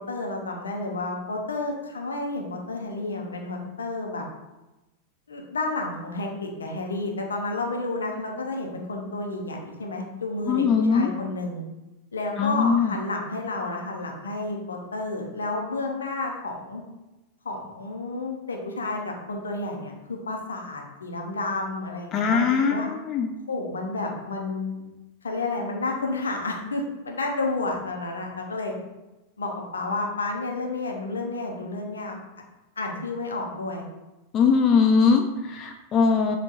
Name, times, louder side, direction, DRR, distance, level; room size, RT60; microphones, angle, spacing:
voice 1, 0.0-4.2 5.3-11.6 12.1-16.8 17.4-22.9 23.5-24.8 25.2-28.7 29.4-32.2 32.8-33.8, left 2 dB, 70° left, 1 dB, 0.7 m, -31 dB
voice 2, 10.5-11.1 12.4-12.9 22.1-23.3 34.3-36.4, left 5 dB, 30° left, 4 dB, 0.3 m, -21 dB
6.5 x 2.4 x 2.8 m, 1.0 s
figure-of-eight pair, 90°, 0 cm